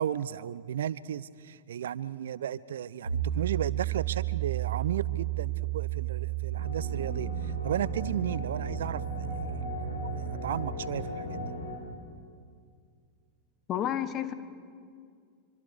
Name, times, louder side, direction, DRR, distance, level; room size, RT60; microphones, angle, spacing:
voice 1, 0.0-9.3 9.5-10.1 10.4-11.5, right 9 dB, 60° right, 20 dB, 0.5 m, -34 dB
Piano, 3.1-10.7, right 15 dB, 80° right, 3.1 m, -33 dB
sound 1, 6.5-11.7, left 2 dB, 75° left, 5.9 m, -37 dB
voice 2, 13.7-14.3, left 10 dB, 30° left, 11 dB, 1.4 m, -30 dB
26.0 x 24.0 x 6.5 m, 2.2 s
figure-of-eight pair, 90°, 0 cm